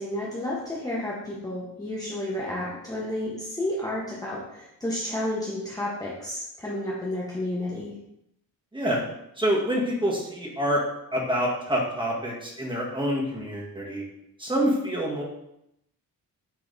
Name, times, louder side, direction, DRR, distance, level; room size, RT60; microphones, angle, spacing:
voice 1, 0.0-8.0, left 1 dB, 10° left, -6 dB, 1.2 m, -31 dB
voice 2, 8.7-9.1 9.4-10.8 11.1-14.0 14.4-15.2, equal, 15° right, -4 dB, 1.8 m, -26 dB
8.6 x 3.9 x 4.0 m, 0.81 s
wide cardioid pair, 140°, 35 cm